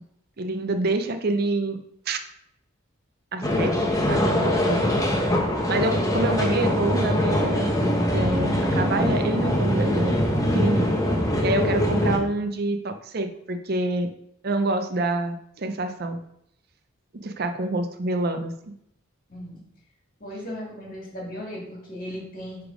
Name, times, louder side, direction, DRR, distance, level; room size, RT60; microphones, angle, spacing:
voice 1, 0.4-1.8 2.1-2.2 3.3-3.7 4.1-4.9 5.7-7.7 8.0-10.1 10.5-10.9 11.4-14.1 14.4-16.2 17.2-18.5, right 2 dB, 45° right, 8 dB, 0.5 m, -26 dB
sound 1, 3.4-12.2, left 1 dB, 15° left, 0.9 m, -23 dB
voice 2, 3.5-3.9 19.3-19.6 20.2-22.6, left 1 dB, 40° left, -2 dB, 2.2 m, -36 dB
9.8 x 3.5 x 5.0 m, 0.77 s
head